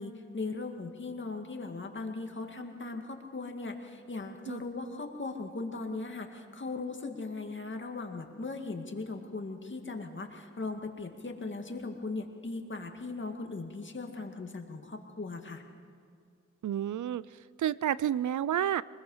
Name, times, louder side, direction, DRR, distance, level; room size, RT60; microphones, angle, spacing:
voice 1, 0.0-15.6, left 3 dB, 40° left, 4 dB, 2.1 m, -38 dB
voice 2, 16.6-17.2 17.6-18.8, right 10 dB, 85° right, 19 dB, 0.5 m, -30 dB
24.5 x 20.0 x 5.6 m, 2.3 s
wide cardioid pair, 85°, 29 cm